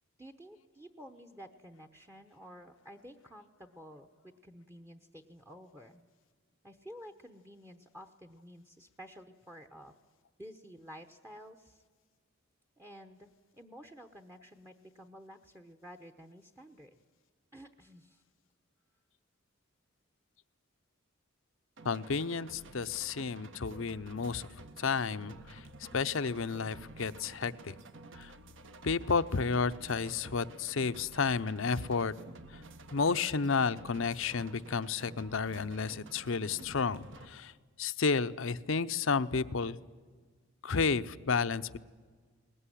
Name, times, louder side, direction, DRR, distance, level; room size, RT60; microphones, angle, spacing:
voice 1, 0.2-6.0 6.6-9.9 10.4-11.8 12.8-16.9 17.5-18.2, equal, 10° right, 7 dB, 0.9 m, -52 dB
voice 2, 21.8-24.4 24.8-25.6 25.9-27.8 28.1-28.3 28.8-32.1 32.9-37.5 37.8-39.8 40.6-41.8, left 5 dB, 65° left, 13 dB, 0.7 m, -31 dB
sound 1, 21.8-37.3, right 2 dB, 60° right, 1.1 m, -51 dB
21.5 x 19.0 x 9.9 m, 1.5 s
head